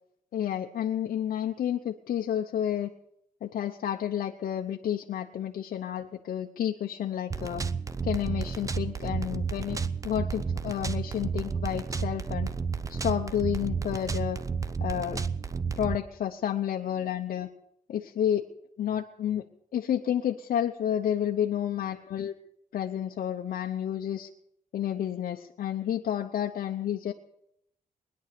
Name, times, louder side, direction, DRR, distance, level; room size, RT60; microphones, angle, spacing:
voice 1, 0.3-2.9 3.4-7.6 8.0-12.5 12.9-14.4 14.8-15.2 15.8-17.5 17.9-18.5 18.8-19.4 19.7-22.3 22.7-24.3 24.7-27.1, left 10 dB, 65° left, 3 dB, 0.8 m, -30 dB
sound 1, 7.3-16.0, right 5 dB, 20° right, 0.5 m, -32 dB
20.5 x 10.5 x 6.8 m, 0.77 s
wide cardioid pair, 170°, 15 cm